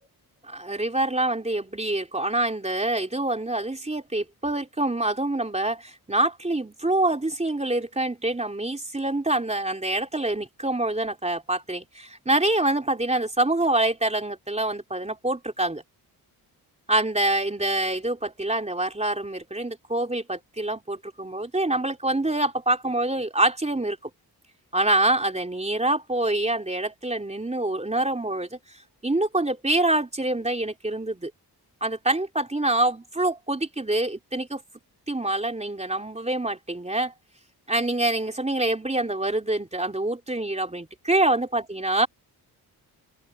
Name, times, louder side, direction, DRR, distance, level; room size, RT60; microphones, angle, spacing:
voice 1, 0.5-15.8 16.9-24.0 24.7-28.6 29.0-31.3 31.8-34.6 35.1-37.1 37.7-42.1, right 2 dB, 15° right, 3.4 m, -26 dB
open air
cardioid pair, 85°, 39 cm